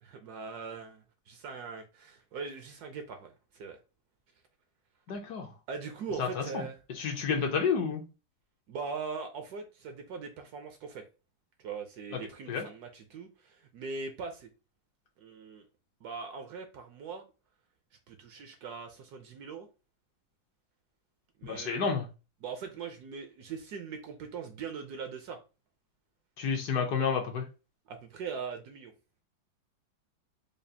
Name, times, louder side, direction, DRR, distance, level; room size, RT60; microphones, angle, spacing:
voice 1, 0.0-3.8 5.7-6.8 8.7-11.0 11.6-14.5 15.2-15.6 16.0-17.2 18.1-19.7 21.4-21.9 22.4-25.4 27.9-28.9, right 5 dB, 70° right, 1.0 m, -41 dB
voice 2, 5.1-5.5 6.2-6.4 7.0-8.0 12.5-12.7 21.4-22.1 26.4-27.4, left 6 dB, 65° left, 1.1 m, -30 dB
5.0 x 2.4 x 2.7 m
omnidirectional pair, 2.0 m